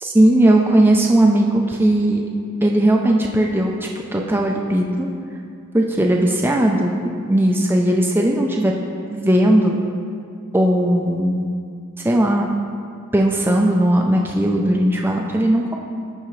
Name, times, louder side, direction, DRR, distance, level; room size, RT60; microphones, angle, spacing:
voice 1, 0.0-2.2 2.6-5.1 5.7-8.7 9.1-9.8 10.5-11.4 12.0-12.5 13.1-15.7, right 1 dB, 10° right, 0 dB, 0.4 m, -17 dB
14.0 x 4.9 x 3.2 m, 2.4 s
head